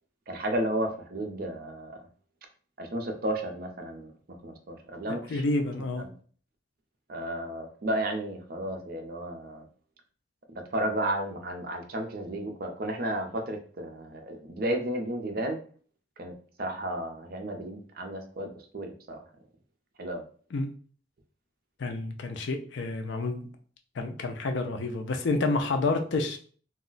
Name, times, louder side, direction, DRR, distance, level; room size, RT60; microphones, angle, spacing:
voice 1, 0.3-2.0 2.8-4.1 4.4-5.4 6.0-6.1 7.1-9.7 10.7-15.6 16.2-16.3 16.6-19.2 20.0-20.2, right 1 dB, 50° right, 4 dB, 0.5 m, -33 dB
voice 2, 5.3-6.0 20.5-20.7 21.8-23.5 24.0-26.4, left 3 dB, 65° left, 5 dB, 0.4 m, -29 dB
2.3 x 2.1 x 3.8 m, 0.43 s
head